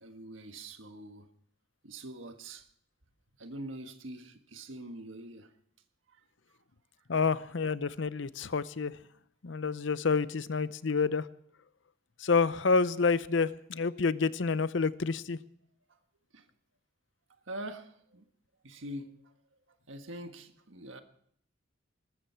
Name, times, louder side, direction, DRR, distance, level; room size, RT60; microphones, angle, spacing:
voice 1, 0.0-1.3 1.8-2.6 3.4-5.5 16.3-16.5 17.5-18.3 18.6-19.1 19.9-21.0, right 1 dB, 80° right, 1.5 m, -44 dB
voice 2, 7.1-8.9 9.4-11.2 12.2-15.4, left 4 dB, 65° left, 0.7 m, -28 dB
20.5 x 14.0 x 4.5 m
head